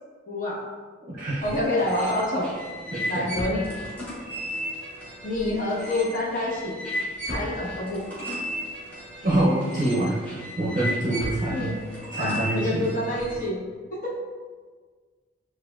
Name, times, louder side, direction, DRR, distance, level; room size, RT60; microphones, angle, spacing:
voice 1, 0.3-0.6 1.4-2.5 3.1-3.7 5.2-6.8 7.2-8.1 11.5-11.8 12.1-13.6 13.9-14.1, left 1 dB, 45° left, -5 dB, 1.1 m, -27 dB
voice 2, 1.1-1.5 2.9-3.3 9.2-11.7 12.1-12.9, right 1 dB, 45° right, -6 dB, 0.6 m, -26 dB
sound 1, 1.4-13.5, equal, 10° left, 1.5 m, -35 dB
7.4 x 2.5 x 2.3 m, 1.5 s
head